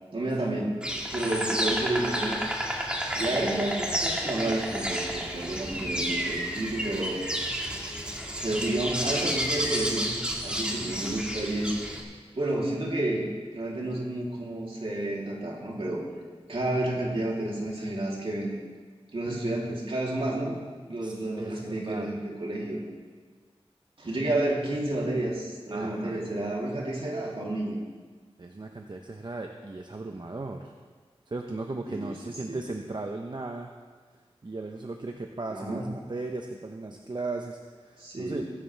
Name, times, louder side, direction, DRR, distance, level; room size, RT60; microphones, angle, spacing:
voice 1, 0.1-0.8 1.1-2.5 3.2-7.2 8.4-11.8 12.4-13.2 13.5-16.0 16.5-18.6 19.1-20.6 20.9-22.8 24.0-27.8 31.9-32.1 32.5-32.7 35.5-35.9 38.0-38.4, right 1 dB, 60° right, -4 dB, 3.4 m, -30 dB
Insect, 0.8-12.0, equal, 10° right, 2.0 m, -31 dB
voice 2, 21.0-22.1 25.7-26.2 28.4-30.7 31.3-33.7 34.4-38.4, right 3 dB, 45° right, 3 dB, 0.9 m, -37 dB
22.0 x 11.0 x 3.5 m, 1.5 s
wide cardioid pair, 70°, 10 cm